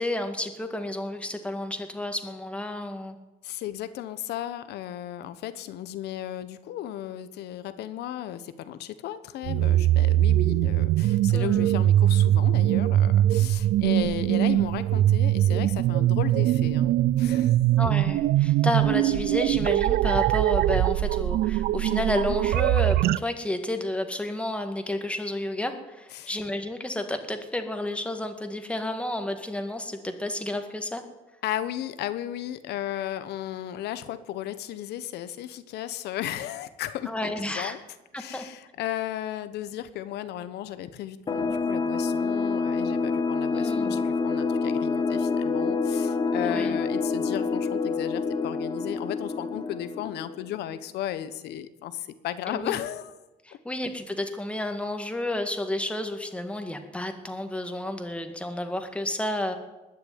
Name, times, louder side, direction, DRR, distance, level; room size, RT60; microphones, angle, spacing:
voice 1, 0.0-3.2 11.3-11.7 17.8-31.0 37.1-37.7 38.1-38.4 43.5-44.0 46.4-46.8 52.5-52.8 53.5-59.5, left 1 dB, 5° left, 6 dB, 2.0 m, -31 dB
voice 2, 3.4-17.5 26.1-26.4 31.4-37.8 38.2-53.1, left 12 dB, 75° left, 13 dB, 1.2 m, -35 dB
sound 1, 9.4-23.2, right 13 dB, 65° right, 0.4 m, -22 dB
sound 2, 41.3-50.6, left 4 dB, 25° left, 1.0 m, -27 dB
20.5 x 6.9 x 9.7 m, 1.1 s
cardioid pair, 110°, 17 cm